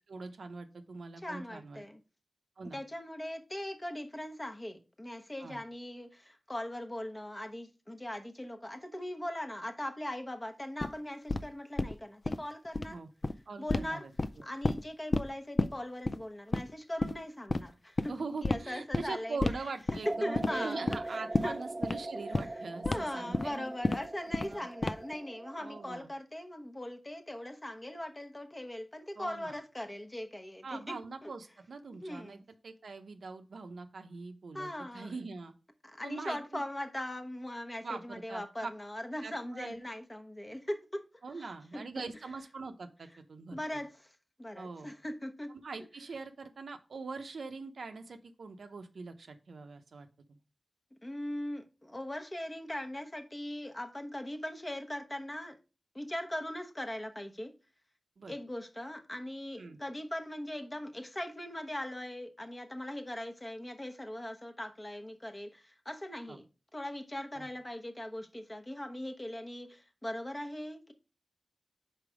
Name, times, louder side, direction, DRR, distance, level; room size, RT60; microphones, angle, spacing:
voice 1, 0.1-1.8 2.6-2.8 5.4-5.6 12.9-13.1 13.5-14.1 14.4-14.5 18.1-23.7 24.4-24.7 25.6-26.1 29.2-29.5 30.6-35.5 36.0-36.6 37.8-38.7 39.2-39.8 41.2-43.6 44.5-44.9 45.6-50.4 58.2-58.4 59.6-59.8 66.3-66.4 67.3-67.5, right 4 dB, 85° right, 0.7 m, -43 dB
voice 2, 1.2-2.0 2.7-13.0 13.6-14.1 14.4-18.2 18.4-19.4 20.1-20.8 21.1-21.6 22.8-31.3 31.9-32.4 34.5-35.1 35.8-41.1 41.4-41.9 43.5-44.1 44.4-45.5 51.0-55.6 55.9-57.5 58.3-66.4 66.7-70.9, left 1 dB, 20° left, 0.9 m, -40 dB
sound 1, 10.8-10.9 11.3-11.4 11.8-11.9 12.2-12.4 12.7-12.9 13.2-13.3 13.7-13.8 14.2-14.8 15.1-15.3 15.6-15.7 16.1-16.2 16.5-16.7 17.0-17.1 17.5-17.6 18.0-18.1 18.4-18.6 18.9-19.0 19.4-19.6 19.9-20.1 20.3-20.5 20.9-21.0 21.3-21.5 21.8-22.0 22.3-22.5 22.8-23.0 23.3-23.5 23.8-24.0 24.3-24.5 24.8-25.1, left 2 dB, 40° left, 0.4 m, -29 dB
sound 2, 20.0-26.0, right 2 dB, 30° right, 0.5 m, -41 dB
5.0 x 4.4 x 4.9 m
wide cardioid pair, 80°, 0 cm